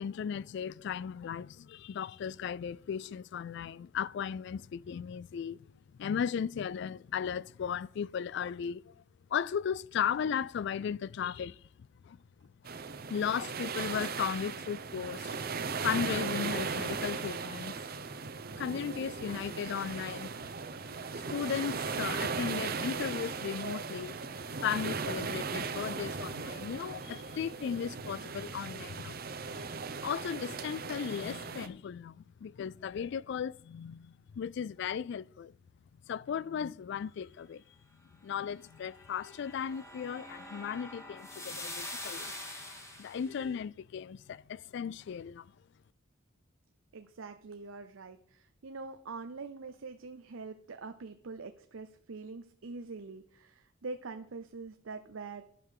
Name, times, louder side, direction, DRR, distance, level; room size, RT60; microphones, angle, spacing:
voice 1, 0.0-5.7 6.0-9.0 9.3-11.6 12.0-12.2 13.1-15.4 15.8-17.8 18.6-20.3 20.9-21.0 21.3-29.2 29.5-29.7 30.0-35.5 36.1-37.6 38.2-42.3 43.0-45.5, left 7 dB, 60° left, 0.3 m, -36 dB
sound 1, 12.6-31.7, right 5 dB, 50° right, 0.8 m, -37 dB
sound 2, 38.7-43.4, left 1 dB, 15° left, 1.9 m, -44 dB
voice 2, 46.9-55.4, right 4 dB, 85° right, 0.7 m, -44 dB
11.0 x 5.8 x 6.6 m
head